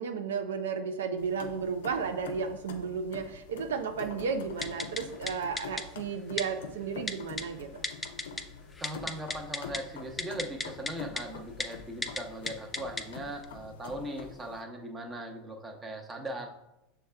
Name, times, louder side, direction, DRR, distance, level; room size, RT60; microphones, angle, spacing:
voice 1, 0.0-7.8, right 6 dB, 85° right, 7 dB, 0.3 m, -33 dB
sound 1, 1.2-14.6, left 5 dB, 80° left, 0.5 m, -45 dB
Typing, 4.6-5.0 5.3-5.4 5.6-5.8 6.4-6.5 7.1-7.4 7.8-8.4 8.7-9.8 10.2-10.9 11.2-11.3 11.6-11.7 12.0-12.2 12.5-13.0 13.4-13.5, left 3 dB, 10° left, 0.4 m, -33 dB
voice 2, 8.8-16.6, right 1 dB, 20° right, 2 dB, 0.8 m, -39 dB
6.2 x 2.2 x 3.3 m, 0.87 s
hypercardioid pair, 105°, 0 cm